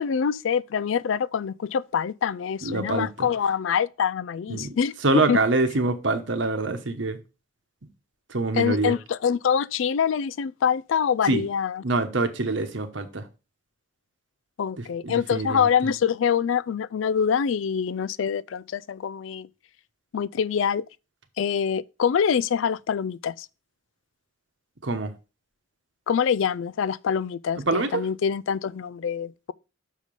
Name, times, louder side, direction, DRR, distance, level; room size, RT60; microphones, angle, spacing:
voice 1, 0.0-5.4 8.5-11.8 14.6-19.5 20.1-20.9 21.4-23.5 26.1-29.5, left 7 dB, 80° left, 0.4 m, -25 dB
voice 2, 2.6-3.3 4.5-4.8 5.0-7.2 8.3-8.9 11.3-11.4 11.8-13.3 14.8-15.7 24.8-25.1 27.6-28.0, right 3 dB, 70° right, 1.1 m, -25 dB
6.6 x 5.0 x 5.3 m
head